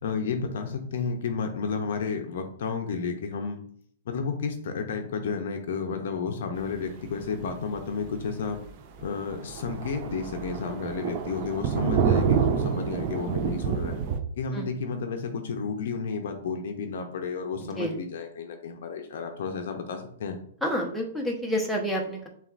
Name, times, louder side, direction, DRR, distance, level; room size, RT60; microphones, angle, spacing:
voice 1, 0.0-3.6 4.1-8.6 9.0-14.0 14.4-20.4, left 5 dB, 65° left, 5 dB, 0.6 m, -32 dB
Thunder, 7.2-7.4 7.8-7.9 8.2-8.3 8.7-8.8 9.0-14.2, right 7 dB, 45° right, 0.5 m, -27 dB
voice 2, 20.6-22.3, equal, ahead, -1 dB, 0.9 m, -28 dB
6.8 x 2.4 x 2.5 m, 0.62 s
hypercardioid pair, 130°, 0 cm